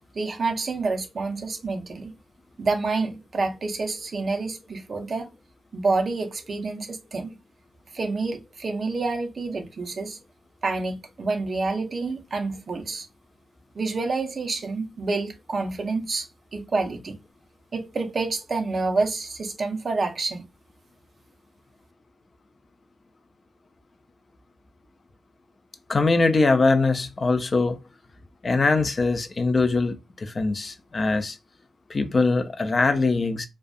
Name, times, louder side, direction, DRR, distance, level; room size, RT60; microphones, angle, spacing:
voice 1, 0.1-2.1 2.6-5.3 5.7-7.4 7.9-10.2 10.6-13.1 13.8-16.3 16.5-17.2 17.7-20.4, right 3 dB, 35° right, 0.5 m, -28 dB
voice 2, 25.9-27.8 28.4-29.9 30.2-31.4 31.9-33.5, left 3 dB, 30° left, 0.3 m, -22 dB
2.5 x 2.2 x 2.3 m
wide cardioid pair, 170°, 0 cm